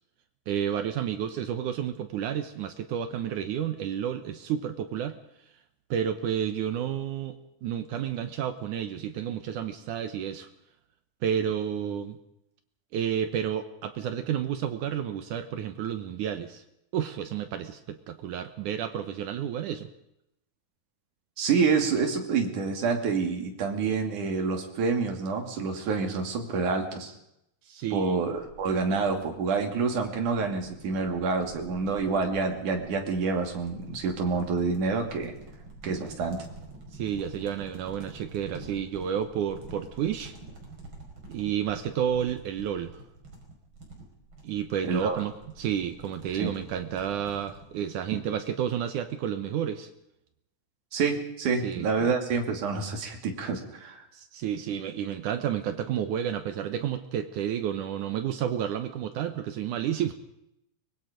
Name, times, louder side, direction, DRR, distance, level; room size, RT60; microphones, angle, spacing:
voice 1, 0.5-5.2 5.9-10.5 11.2-12.2 12.9-16.6 16.9-19.9 27.7-28.2 36.9-40.3 41.3-43.0 44.4-49.9 51.6-52.1 54.1-60.1, right 9 dB, 75° right, 8 dB, 1.9 m, -31 dB
voice 2, 21.4-27.1 27.9-35.4 35.8-36.4 44.9-45.2 46.4-46.5 50.9-54.0, right 4 dB, 50° right, 3 dB, 3.7 m, -27 dB
sound 1, 28.4-47.7, right 3 dB, 30° right, 5.3 m, -48 dB
23.5 x 22.0 x 5.2 m, 0.81 s
omnidirectional pair, 4.9 m